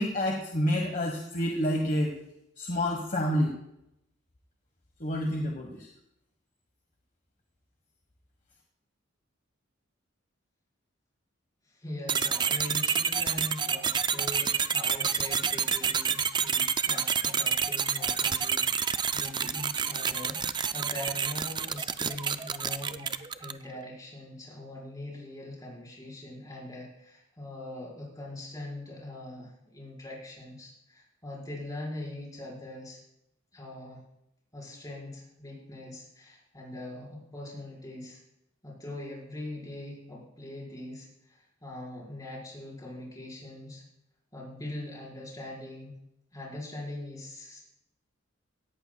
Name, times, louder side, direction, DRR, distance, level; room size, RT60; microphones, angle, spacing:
voice 1, 0.0-2.2 2.6-3.6 5.0-5.9, equal, 40° left, 2 dB, 1.4 m, -28 dB
voice 2, 11.7-33.0 33.5-34.0 34.5-38.2 38.6-43.8 44.3-45.9 46.3-47.7, left 1 dB, 20° left, -4 dB, 4.9 m, -42 dB
sound 1, 12.1-23.7, right 7 dB, 20° right, 0.4 m, -28 dB
17.0 x 14.0 x 2.3 m, 0.81 s
head